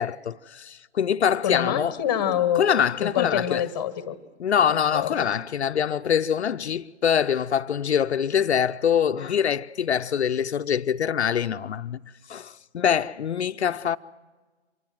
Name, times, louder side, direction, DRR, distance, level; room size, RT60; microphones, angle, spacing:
voice 1, 0.0-1.9 2.6-3.6 4.4-12.0 12.3-14.0, left 8 dB, 70° left, 0.7 m, -24 dB
voice 2, 1.4-2.6 3.0-4.2 4.6-5.3, left 10 dB, 20° left, 1.2 m, -26 dB
25.5 x 20.5 x 7.7 m
hypercardioid pair, 165°, 34 cm